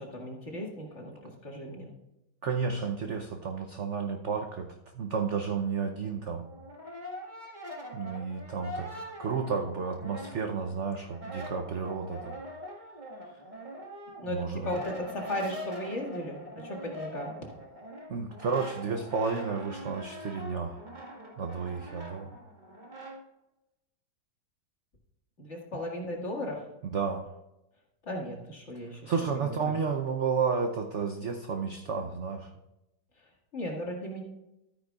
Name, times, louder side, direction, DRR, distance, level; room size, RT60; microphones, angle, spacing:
voice 1, 0.0-1.9 14.2-14.4 14.6-17.3 25.4-26.6 28.1-29.0 29.3-29.7 33.5-34.3, left 1 dB, 40° left, -1 dB, 2.2 m, -36 dB
voice 2, 2.4-6.5 7.9-12.3 14.3-14.7 18.1-20.8 21.4-22.3 26.9-27.3 28.8-32.5, right 5 dB, 60° right, 5 dB, 0.8 m, -32 dB
Brass instrument, 6.3-10.7 11.0-23.2, equal, 25° right, 1.8 m, -43 dB
13.0 x 9.6 x 2.4 m, 0.92 s
omnidirectional pair, 2.0 m